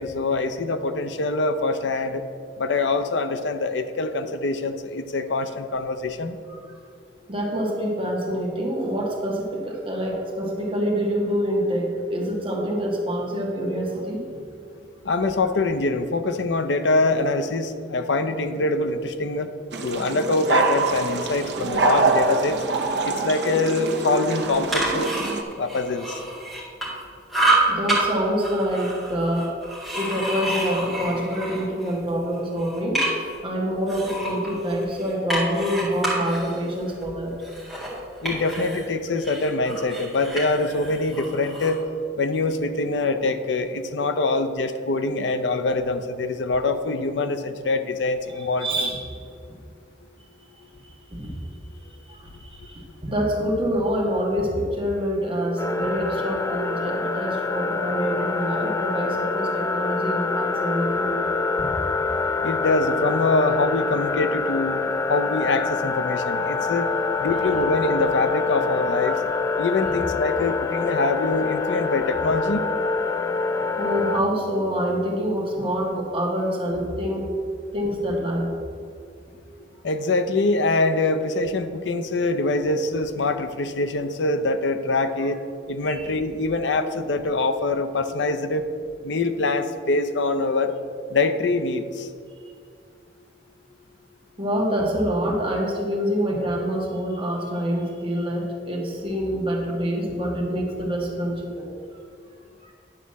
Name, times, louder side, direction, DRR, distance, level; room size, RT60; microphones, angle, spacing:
voice 1, 0.0-2.2 2.6-6.4 15.0-19.5 19.8-22.6 23.0-25.1 25.6-26.1 38.2-41.8 42.2-48.7 62.4-64.8 65.1-66.9 67.2-69.2 69.6-72.6 79.8-85.4 85.7-88.6 89.0-90.7 91.1-92.1, left 2 dB, 80° left, 9 dB, 0.6 m, -24 dB
voice 2, 7.3-14.2 27.7-29.6 29.9-37.3 48.3-49.2 51.1-51.3 51.8-61.4 66.7-67.6 69.0-69.3 69.8-70.0 73.7-77.3 77.7-78.5 85.9-86.1 94.4-101.7 102.6-102.7, equal, 30° right, -1 dB, 1.5 m, -26 dB
sound 1, 19.7-25.4, right 3 dB, 70° right, 0.9 m, -24 dB
sound 2, 24.5-27.0 27.3-28.0 28.4-31.9 32.3-33.4 33.9-38.9 39.2-41.8, right 2 dB, ahead, 2.2 m, -28 dB
sound 3, 55.6-74.2, left 4 dB, 15° left, 0.4 m, -26 dB
9.9 x 4.1 x 7.4 m, 2.3 s
head